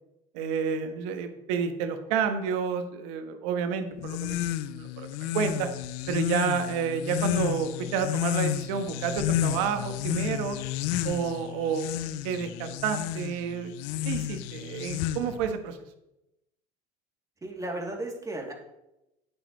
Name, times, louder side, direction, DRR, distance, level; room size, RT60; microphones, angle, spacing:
voice 1, 0.3-5.7 6.1-10.6 11.0-11.9 12.2-13.7 14.0-15.8, right 6 dB, 75° right, 8 dB, 1.3 m, -30 dB
sound 1, 4.0-15.5, left 12 dB, 70° left, 0.6 m, -31 dB
voice 2, 17.4-18.5, right 1 dB, 20° right, 0 dB, 2.9 m, -34 dB
11.5 x 9.0 x 3.2 m, 0.88 s
hypercardioid pair, 85°, 19 cm